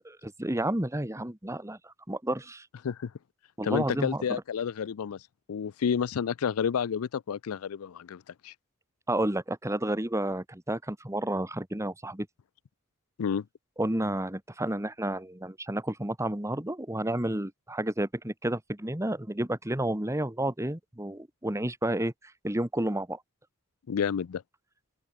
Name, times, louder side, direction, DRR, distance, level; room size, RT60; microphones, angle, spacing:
voice 1, 0.2-2.7 3.6-4.2 9.1-12.3 13.8-22.1 22.4-23.2, right 1 dB, 15° right, 1.7 m, -31 dB
voice 2, 3.6-5.2 5.5-8.5 13.2-13.4 23.9-24.4, left 7 dB, 85° left, 0.4 m, -30 dB
open air
head